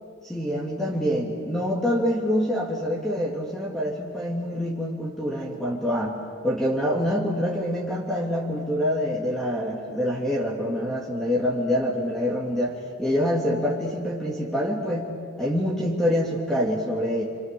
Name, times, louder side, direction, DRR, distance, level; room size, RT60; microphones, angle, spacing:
voice 1, 0.2-6.2 6.4-15.1 15.4-17.2, equal, ahead, -4 dB, 2.9 m, -26 dB
29.5 x 28.0 x 7.0 m, 2.2 s
head